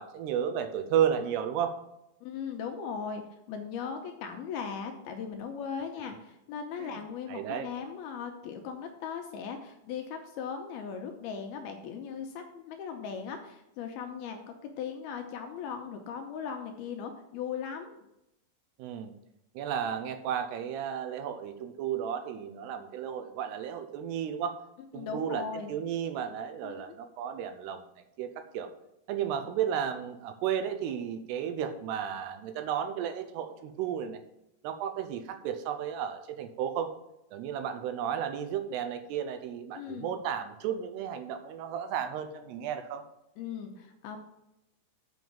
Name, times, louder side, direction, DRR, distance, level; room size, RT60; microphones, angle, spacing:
voice 1, 0.0-1.7 6.8-7.0 7.3-7.7 18.8-19.1 19.6-24.6 24.9-25.4 25.7-27.8 28.2-28.7 29.1-34.2 34.6-36.9 37.3-43.0, right 9 dB, 80° right, 8 dB, 2.6 m, -33 dB
voice 2, 2.2-3.2 3.5-18.0 25.0-25.7 26.6-26.9 39.7-40.1 43.4-44.2, left 6 dB, 80° left, 4 dB, 2.4 m, -38 dB
7.0 x 6.2 x 7.2 m, 0.86 s
omnidirectional pair, 5.0 m